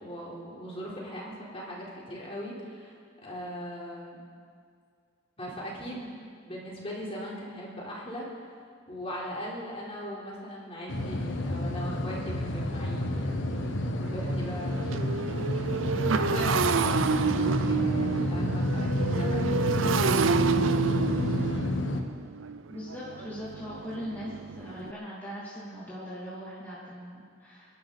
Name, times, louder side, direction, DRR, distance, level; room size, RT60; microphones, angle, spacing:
voice 1, 0.0-3.0 3.2-4.2 5.4-8.3 8.9-15.3 16.2-20.9, equal, 30° left, -5 dB, 4.0 m, -39 dB
sound 1, 10.9-22.0, left 1 dB, 75° left, 1.3 m, -29 dB
Motorcycle, 12.3-12.4 12.9-13.0 13.3-24.9, right 5 dB, 80° right, 0.5 m, -29 dB
voice 2, 22.7-27.8, equal, 10° left, -9 dB, 2.8 m, -40 dB
29.5 x 11.5 x 4.2 m, 2.1 s
head